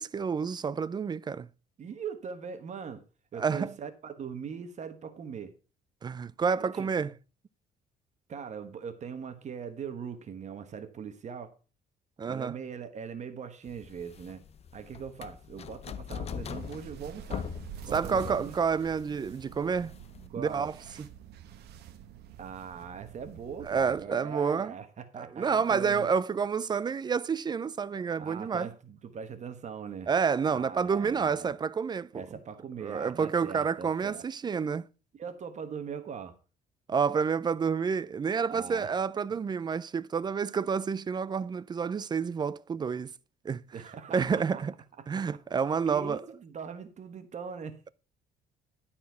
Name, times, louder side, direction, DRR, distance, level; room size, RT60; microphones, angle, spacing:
voice 1, 0.0-1.5 3.4-3.7 6.0-7.1 12.2-12.5 17.9-19.9 20.4-20.7 21.0-21.1 23.6-24.7 25.2-28.7 30.1-32.2 32.8-34.9 36.9-43.1 43.4-43.6 44.1-44.7 45.1-46.2, right 6 dB, 25° right, 0.4 m, -29 dB
voice 2, 1.8-3.0 3.3-5.5 6.6-6.9 8.3-11.6 12.2-14.4 14.7-17.5 17.8-18.5 20.3-20.7 22.4-26.2 28.2-30.1 30.5-31.5 32.1-34.2 35.2-36.4 38.5-39.0 39.3-39.4 43.7-44.6 45.0-45.2 45.9-47.8, right 6 dB, 45° right, 1.2 m, -41 dB
sound 1, 13.7-20.3, left 7 dB, 40° left, 0.6 m, -41 dB
sound 2, 16.3-24.0, right 10 dB, 75° right, 1.1 m, -48 dB
12.0 x 4.3 x 5.6 m
cardioid pair, 110°, 17 cm